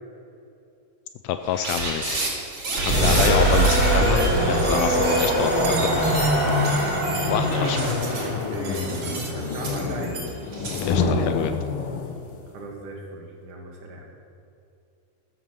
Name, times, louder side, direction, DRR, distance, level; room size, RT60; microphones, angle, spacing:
voice 1, 1.2-2.3 2.8-6.0 7.3-7.8 10.8-11.6, left 10 dB, 85° left, 9 dB, 1.5 m, -27 dB
sound 1, 1.4-10.9, right 3 dB, 50° right, 3.6 m, -31 dB
sound 2, 2.7-10.4, right 1 dB, 5° right, 3.6 m, -22 dB
sound 3, 3.1-12.4, left 5 dB, 60° left, 1.6 m, -30 dB
voice 2, 7.3-10.2 12.5-14.1, right 3 dB, 75° right, -1 dB, 3.0 m, -36 dB
15.0 x 9.3 x 6.6 m, 2.6 s
omnidirectional pair, 3.6 m